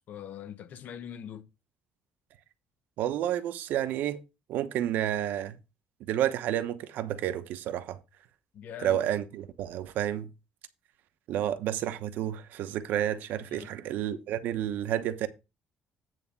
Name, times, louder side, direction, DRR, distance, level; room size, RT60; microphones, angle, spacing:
voice 1, 0.0-1.5 8.5-9.0 13.5-13.7, left 9 dB, 60° left, 0.9 m, -42 dB
voice 2, 3.0-4.2 4.5-5.6 6.1-8.0 8.8-10.3 11.3-15.3, right 11 dB, 75° right, 1.0 m, -30 dB
9.2 x 3.6 x 6.8 m
cardioid pair, 125°, 3 cm